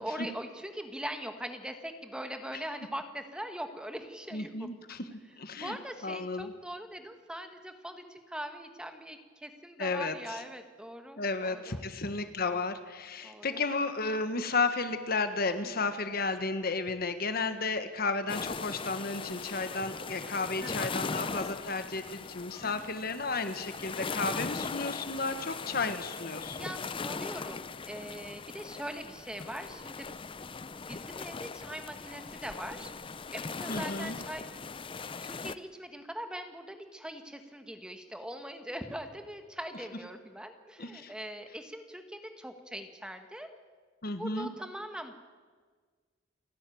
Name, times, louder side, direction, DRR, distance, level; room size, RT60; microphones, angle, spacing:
voice 1, 0.0-4.7 5.5-11.8 13.2-13.6 15.6-15.7 20.6-20.9 22.6-22.9 26.5-30.1 30.9-32.9 33.3-34.8 35.2-43.5 44.2-45.1, equal, 5° right, 7 dB, 1.4 m, -41 dB
voice 2, 4.3-5.0 5.4-5.8 6.0-6.5 9.8-10.4 11.2-26.7 33.7-34.2 40.8-41.1 44.0-44.5, left 3 dB, 50° left, 9 dB, 1.4 m, -33 dB
sound 1, 18.3-35.5, left 4 dB, 25° left, 0.6 m, -39 dB
28.5 x 12.0 x 9.3 m, 1.5 s
head